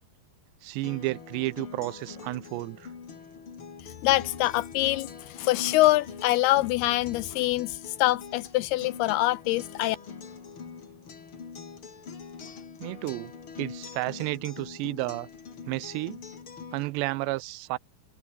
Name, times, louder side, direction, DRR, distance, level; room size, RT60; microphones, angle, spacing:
voice 1, 0.6-2.9 12.8-13.3 13.6-15.3 15.7-16.2 16.7-17.8, right 21 dB, 85° right, 2.9 m, -32 dB
Acoustic guitar, 0.8-16.8, left 6 dB, 35° left, 2.9 m, -43 dB
voice 2, 3.8-10.0, left 17 dB, 85° left, 2.3 m, -25 dB
omnidirectional pair, 4.9 m